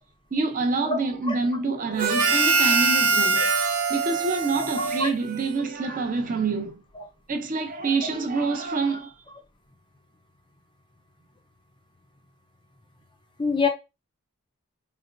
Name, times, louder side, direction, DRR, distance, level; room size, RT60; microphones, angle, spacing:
voice 1, 0.3-3.5 3.9-6.8 7.3-9.2, right 3 dB, 35° right, 0.5 m, -27 dB
voice 2, 0.9-1.0 1.3-1.4 5.0-5.1 7.0-7.1 13.4-13.7, left 4 dB, 20° left, 0.4 m, -23 dB
Harmonica, 2.0-5.8, right 4 dB, 90° right, 0.6 m, -23 dB
4.1 x 2.0 x 2.5 m
head